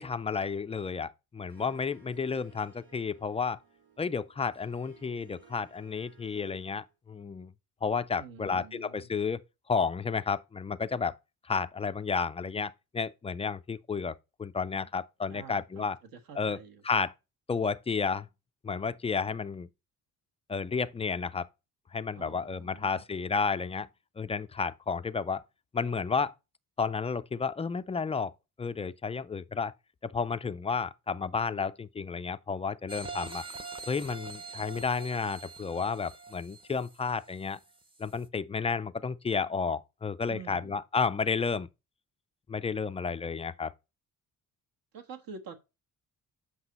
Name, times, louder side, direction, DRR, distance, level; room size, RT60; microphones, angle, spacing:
voice 1, 0.0-3.6 4.0-7.5 7.8-9.4 9.7-11.1 11.4-16.0 16.4-16.6 16.8-17.1 17.5-18.3 18.6-19.7 20.5-21.5 21.9-23.9 24.2-25.4 25.7-26.3 26.8-28.3 28.6-29.7 30.0-33.4 33.9-37.6 38.0-41.7 42.5-43.7, left 5 dB, 15° left, 0.3 m, -32 dB
Harp, 1.5-7.0, right 6 dB, 90° right, 4.4 m, -60 dB
voice 2, 8.2-9.1 15.3-15.9 16.1-16.8 22.1-23.0 40.3-40.8 44.9-45.5, right 5 dB, 65° right, 1.5 m, -47 dB
sound 1, 32.9-37.6 38.1-38.2, right 4 dB, 15° right, 0.7 m, -44 dB
7.9 x 5.8 x 4.1 m
cardioid pair, 125°, 37 cm